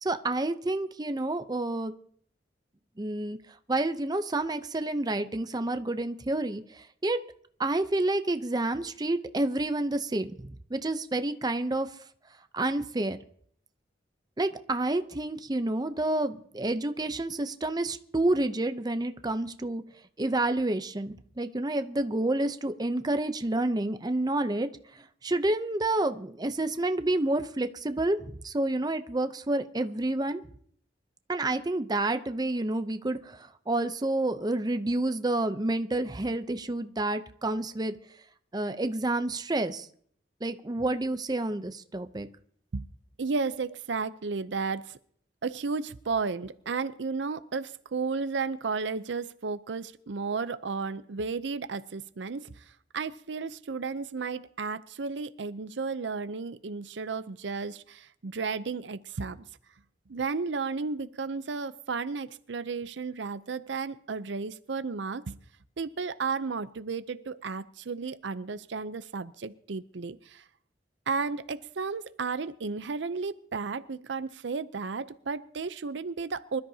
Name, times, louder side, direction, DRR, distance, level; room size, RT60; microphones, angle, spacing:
voice 1, 0.0-1.9 3.0-3.4 3.7-7.2 7.6-11.9 12.5-13.2 14.4-19.8 20.2-24.7 25.0-30.4 31.3-37.9 38.5-39.9 40.4-42.3, right 2 dB, 20° right, 9 dB, 0.6 m, -29 dB
voice 2, 43.2-45.0 45.4-52.6 52.9-59.4 60.1-65.4 65.8-70.4 71.1-76.6, right 4 dB, 75° right, 14 dB, 0.6 m, -33 dB
25.0 x 13.0 x 2.8 m, 0.62 s
head